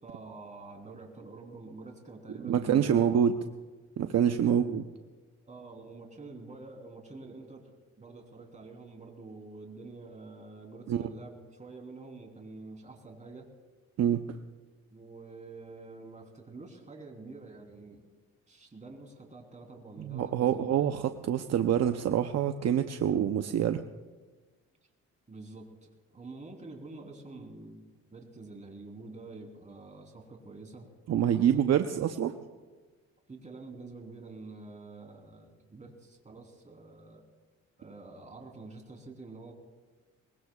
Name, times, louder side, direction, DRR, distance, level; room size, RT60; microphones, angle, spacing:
voice 1, 0.0-3.2 4.2-4.7 5.4-7.7 8.0-13.5 14.9-18.1 18.5-20.9 25.3-30.8 31.2-31.6 33.3-37.2 37.8-39.5, right 3 dB, 25° right, 1 dB, 3.6 m, -47 dB
voice 2, 2.4-3.4 4.0-4.8 10.9-11.0 14.0-14.4 20.0-23.8 31.1-32.3, right 9 dB, 60° right, 7 dB, 0.8 m, -26 dB
23.0 x 20.5 x 2.4 m, 1.3 s
cardioid pair, 90°, 30 cm